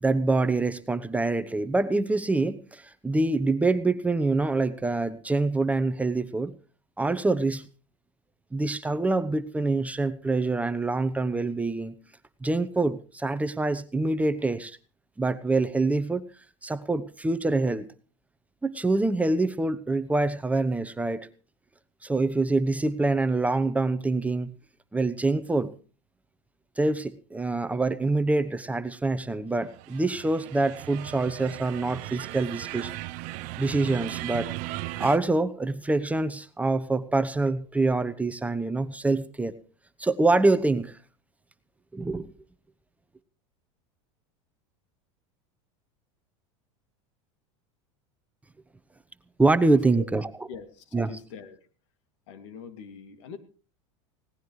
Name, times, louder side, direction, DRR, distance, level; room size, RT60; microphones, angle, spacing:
voice 1, 0.0-6.5 7.0-7.7 8.5-11.9 12.4-14.8 15.2-16.2 16.6-17.8 18.6-21.3 22.0-24.5 24.9-25.7 26.8-32.9 33.6-34.5 35.0-39.5 40.0-41.0 41.9-42.3 49.4-50.2 50.9-51.1, right 3 dB, 10° right, 12 dB, 0.9 m, -25 dB
sound 1, 29.7-35.2, right 19 dB, 55° right, 0.8 m, -37 dB
voice 2, 50.5-51.6 52.3-53.4, left 6 dB, 70° left, 9 dB, 2.5 m, -42 dB
20.5 x 17.5 x 3.2 m, 0.37 s
supercardioid pair, 110°, 16 cm